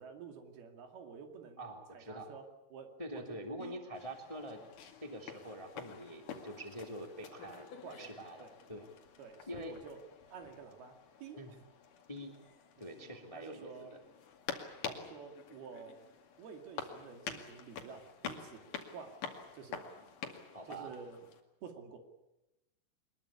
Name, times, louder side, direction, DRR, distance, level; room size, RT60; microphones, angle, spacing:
voice 1, 0.0-1.6 1.9-3.8 7.8-8.1 8.4-8.5 9.2-10.0 10.3-11.4 13.3-14.0 14.8-16.1 16.4-18.7 18.9-19.3 19.5-19.9 20.7-21.3 21.6-22.0, right 6 dB, 65° right, 5 dB, 4.2 m, -50 dB
voice 2, 1.6-2.3 3.0-4.6 5.0-7.7 8.0-8.8 9.5-9.7 11.4-11.5 12.1-12.3 12.8-14.0 20.5-20.9, right 1 dB, 10° left, 4 dB, 1.7 m, -45 dB
sound 1, 3.9-21.4, left 6 dB, 55° left, 3.4 m, -48 dB
23.5 x 21.5 x 8.5 m, 0.92 s
omnidirectional pair, 5.0 m